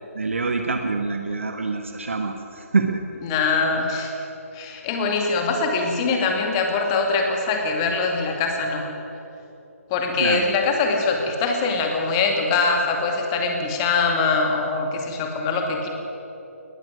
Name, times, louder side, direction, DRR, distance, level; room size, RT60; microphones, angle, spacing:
voice 1, 0.1-3.0 10.1-10.5, right 4 dB, 55° right, 5 dB, 1.4 m, -25 dB
voice 2, 3.2-4.1 4.5-8.9 9.9-15.9, left 4 dB, 20° left, 3 dB, 2.3 m, -23 dB
20.0 x 14.0 x 9.7 m, 2.9 s
figure-of-eight pair, 145°, 8 cm